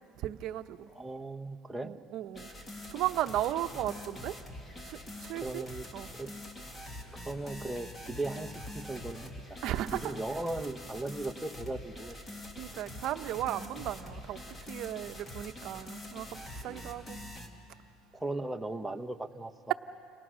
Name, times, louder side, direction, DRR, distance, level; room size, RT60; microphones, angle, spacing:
voice 1, 0.2-0.9 1.8-2.5 2.9-4.4 4.8-5.6 5.9-6.1 9.6-10.2 12.6-17.2, right 13 dB, 60° right, 10 dB, 0.9 m, -35 dB
voice 2, 0.9-1.9 5.4-5.9 6.2-6.3 7.2-9.3 9.9-12.2 16.6-16.9 18.1-19.7, right 2 dB, 5° right, 3 dB, 1.0 m, -37 dB
sound 1, 2.4-17.5, left 1 dB, 20° left, 2.1 m, -45 dB
29.5 x 29.0 x 6.3 m, 2.6 s
cardioid pair, 135°, 0 cm